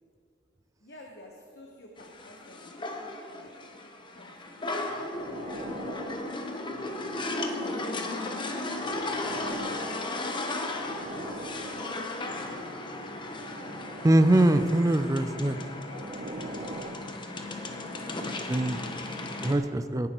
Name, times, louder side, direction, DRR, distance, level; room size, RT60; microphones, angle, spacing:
voice 1, 0.8-3.6 4.2-4.6 5.3-5.7 7.6-10.1 11.3-12.2 15.2-16.9 18.0-20.1, left 1 dB, 65° left, 0 dB, 1.2 m, -51 dB
sound 1, 2.0-19.5, left 2 dB, 25° left, 0.9 m, -35 dB
sound 2, 4.5-7.6 8.3-12.5 13.2-14.3 15.2-18.5 19.2-19.4, right 2 dB, 45° right, 0.8 m, -44 dB
voice 2, 14.0-15.6 18.5-18.8 19.4-20.1, right 1 dB, 20° right, 10 dB, 0.4 m, -22 dB
18.0 x 10.5 x 3.0 m, 2.4 s
head